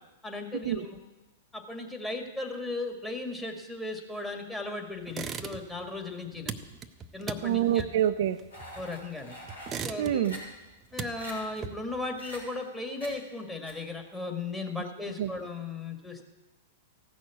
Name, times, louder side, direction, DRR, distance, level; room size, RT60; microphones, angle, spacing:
voice 1, 0.2-1.0 1.5-6.5 7.1-7.9 8.8-9.4 9.8-10.2 10.9-16.2, left 2 dB, 10° left, 2 dB, 2.0 m, -36 dB
sound 1, 5.1-5.9 6.1-9.1 9.5-10.4 10.7-12.1, right 6 dB, 25° right, 0.8 m, -39 dB
voice 2, 7.4-8.4 10.0-10.4 15.2-15.3, right 11 dB, 60° right, 9 dB, 0.6 m, -26 dB
sound 2, 8.5-9.8 10.2-10.4 10.8-10.9 11.2-11.3 12.1-12.4 13.0-13.1 13.7-13.8, equal, 90° left, 3.8 m, -44 dB
15.5 x 6.3 x 8.4 m, 1.1 s
hypercardioid pair, 105°, 0 cm